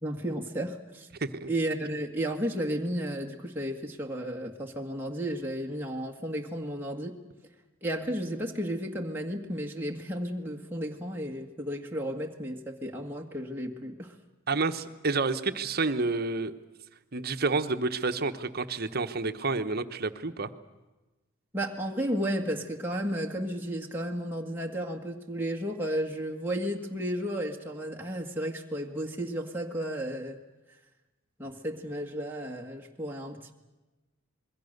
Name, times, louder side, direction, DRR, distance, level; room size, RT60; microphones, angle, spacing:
voice 1, 0.0-1.1 1.5-7.2 7.8-14.2 21.5-30.4 31.4-33.5, equal, 10° right, 0 dB, 1.9 m, -33 dB
voice 2, 14.5-16.5 17.1-20.5, right 3 dB, 50° right, 9 dB, 1.2 m, -29 dB
26.5 x 22.0 x 6.7 m, 1.1 s
head